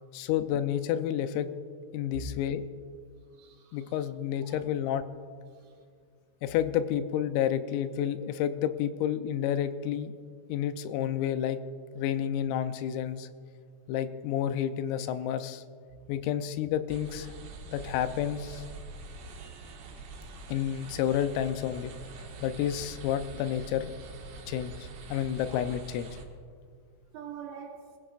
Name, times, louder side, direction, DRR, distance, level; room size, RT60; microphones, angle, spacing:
voice 1, 0.1-1.5 1.9-2.6 3.7-5.1 6.4-10.1 10.5-11.6 12.0-13.3 13.9-15.6 16.1-17.3 17.7-18.6 20.5-21.9 22.4-23.9 24.5-24.7 25.1-26.1, left 10 dB, 85° left, 3.3 m, -30 dB
voice 2, 3.4-3.9 4.5-4.6 5.5-5.7 13.1-13.2 25.3-25.7 27.1-27.9, right 8 dB, 75° right, 3.4 m, -46 dB
sound 1, 16.9-26.2, right 3 dB, 90° right, 4.4 m, -45 dB
25.5 x 16.0 x 2.5 m
omnidirectional pair, 5.9 m